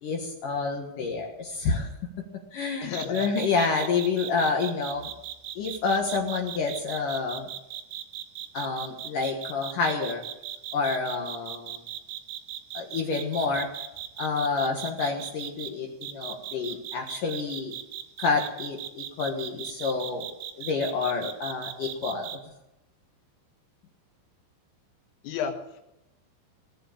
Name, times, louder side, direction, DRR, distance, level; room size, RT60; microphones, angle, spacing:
voice 1, 0.0-1.9 2.5-5.1 5.6-7.5 8.5-10.2 10.7-11.8 12.7-13.7 14.2-17.7 18.2-20.3 20.5-22.3, left 4 dB, 65° left, 2 dB, 2.2 m, -28 dB
voice 2, 2.8-3.3 25.2-25.8, left 7 dB, 85° left, 6 dB, 4.1 m, -32 dB
sound 1, 2.9-15.7 16.0-22.4, right 12 dB, 75° right, 3.0 m, -37 dB
19.5 x 7.8 x 8.6 m, 0.89 s
omnidirectional pair, 5.7 m